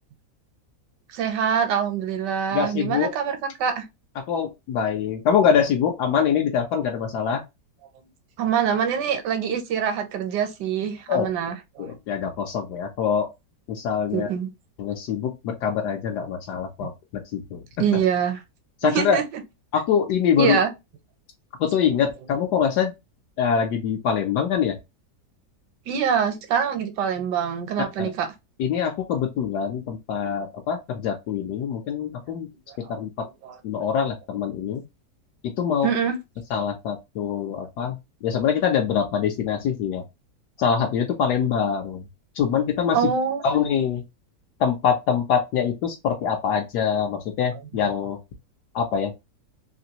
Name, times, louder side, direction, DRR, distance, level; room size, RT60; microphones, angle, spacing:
voice 1, 1.1-3.8 8.4-11.9 14.1-14.5 17.8-18.4 18.8-19.2 20.4-20.7 25.9-28.3 33.4-33.5 35.8-36.2 42.9-43.6, right 7 dB, 80° right, 1.3 m, -24 dB
voice 2, 2.5-3.1 4.2-7.4 11.1-11.3 11.8-13.3 13.7-14.3 14.8-17.6 17.9-18.0 18.8-19.2 19.7-20.6 21.6-22.9 23.4-24.7 28.0-28.1 28.6-32.5 32.9-33.3 33.6-34.8 35.4-35.9 36.5-38.0 38.2-40.0 40.6-42.0 42.3-43.1 43.4-44.0 44.6-48.2 48.7-49.1, left 7 dB, 75° left, 1.2 m, -24 dB
3.3 x 2.5 x 2.8 m
omnidirectional pair, 1.8 m